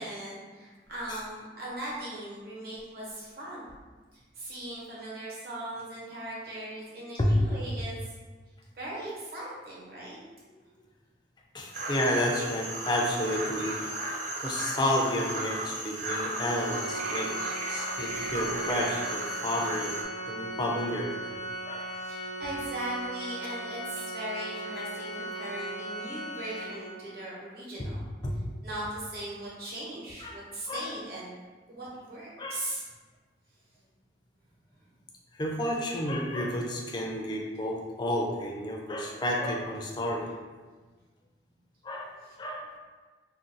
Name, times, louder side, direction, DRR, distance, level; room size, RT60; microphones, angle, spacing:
voice 1, 0.0-3.7 4.3-8.0 8.8-10.2 21.9-28.0 28.6-31.3 31.7-32.8, right 1 dB, 60° right, -7 dB, 1.0 m, -39 dB
voice 2, 11.5-13.9 14.4-17.3 17.7-20.0 20.3-21.1 21.7-21.9 25.3-25.4 27.8-27.9 28.2-28.3 30.2-30.4 30.7-30.9 32.4-32.6 35.3-40.3 41.8-42.1 42.4-42.8, left 1 dB, 25° left, 0 dB, 0.4 m, -31 dB
sound 1, 11.7-20.0, right 2 dB, 45° right, 0.4 m, -35 dB
Organ, 16.5-27.2, right 1 dB, 75° left, 0.6 m, -38 dB
2.5 x 2.2 x 3.8 m, 1.4 s
head